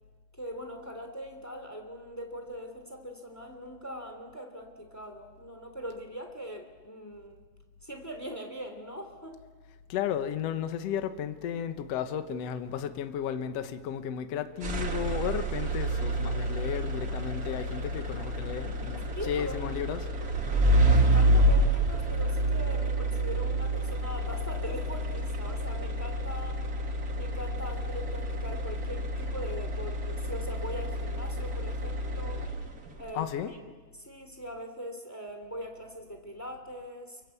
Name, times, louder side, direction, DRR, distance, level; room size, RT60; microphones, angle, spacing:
voice 1, 0.4-7.4 7.8-9.4 19.2-19.6 20.5-26.6 27.1-32.4 33.0-33.6 34.0-37.2, equal, 5° left, 2.4 m, -41 dB
voice 2, 9.9-20.1 33.1-33.5, left 9 dB, 65° left, 1.6 m, -34 dB
sound 1, 14.6-32.9, right 1 dB, 40° right, 1.4 m, -28 dB
30.0 x 23.5 x 8.3 m
omnidirectional pair, 4.6 m